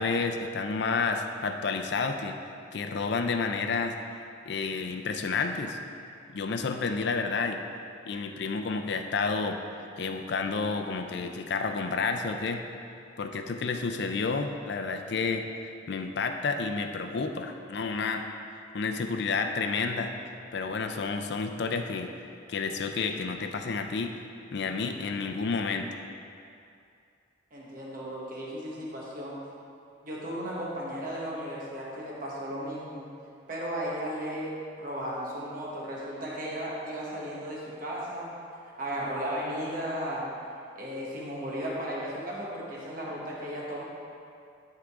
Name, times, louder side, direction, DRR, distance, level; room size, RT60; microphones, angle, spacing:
voice 1, 0.0-2.4 2.7-4.0 4.5-5.8 6.3-7.6 8.1-9.6 10.0-12.7 13.2-15.5 15.9-18.2 18.7-20.1 20.5-22.1 22.5-24.1 24.5-25.9, left 4 dB, 60° left, 5 dB, 0.5 m, -30 dB
voice 2, 27.5-29.4 30.0-33.0 33.5-38.3 38.8-40.3 40.7-43.8, equal, 45° right, -5 dB, 1.2 m, -35 dB
11.5 x 3.8 x 3.6 m, 2.5 s
head